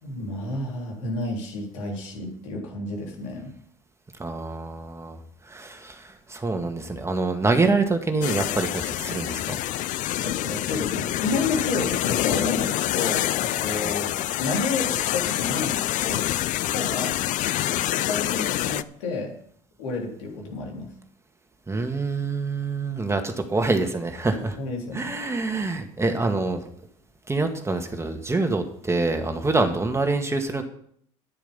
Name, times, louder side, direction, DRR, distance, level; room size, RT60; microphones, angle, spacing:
voice 1, 0.0-3.5 9.8-9.9 10.2-16.3 16.6-17.2 17.9-19.3 19.8-20.9 24.6-25.1, left 3 dB, 85° left, 0 dB, 3.7 m, -31 dB
voice 2, 4.2-5.2 5.5-9.6 13.8-13.9 21.7-24.6 24.9-26.6 27.3-30.6, right 3 dB, 15° right, 5 dB, 1.9 m, -26 dB
sound 1, 8.2-18.8, left 14 dB, 55° left, 0.5 m, -26 dB
10.0 x 10.0 x 5.5 m, 0.64 s
hypercardioid pair, 75°, 15 cm